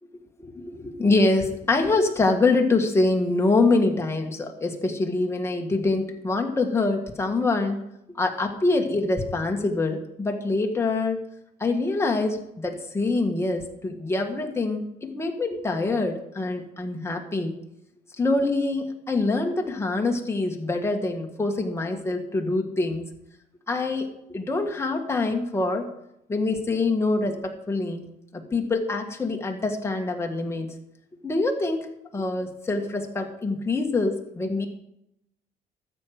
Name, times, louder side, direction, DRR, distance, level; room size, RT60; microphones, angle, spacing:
voice 1, 0.4-7.8 8.1-11.2 11.6-17.6 18.2-23.1 23.7-25.8 26.3-30.7 31.2-31.9 32.1-34.7, left 3 dB, 15° left, 2 dB, 1.7 m, -25 dB
12.5 x 7.7 x 5.1 m, 0.80 s
cardioid pair, 110°, 17 cm